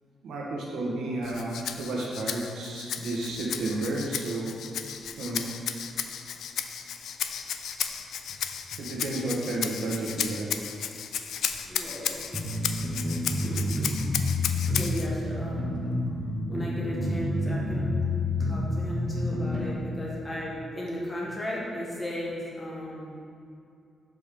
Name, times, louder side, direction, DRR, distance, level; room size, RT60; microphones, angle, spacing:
voice 1, 0.2-4.5 5.2-5.4 8.8-10.5, right 2 dB, 75° right, -3 dB, 1.5 m, -31 dB
Rattle (instrument), 1.2-15.1, left 8 dB, 75° left, 0.4 m, -34 dB
voice 2, 11.6-12.8 13.4-13.7 14.6-15.8 16.5-18.0 18.4-23.1, left 1 dB, 15° left, -5 dB, 1.4 m, -36 dB
sound 1, 12.3-19.7, left 1 dB, 15° right, 1.0 m, -29 dB
6.5 x 5.3 x 5.2 m, 2.5 s
wide cardioid pair, 165°, 0 cm